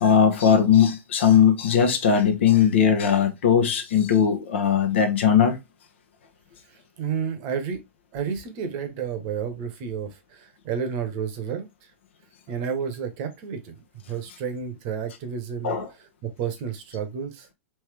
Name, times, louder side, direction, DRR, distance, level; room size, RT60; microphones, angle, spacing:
voice 1, 0.0-5.6 15.6-15.9, left 8 dB, 60° left, 0.9 m, -19 dB
voice 2, 6.7-7.8 8.1-11.7 12.5-13.8 14.1-15.7 16.2-17.5, right 7 dB, 40° right, 0.9 m, -31 dB
3.4 x 3.0 x 3.3 m
figure-of-eight pair, 100°, 7 cm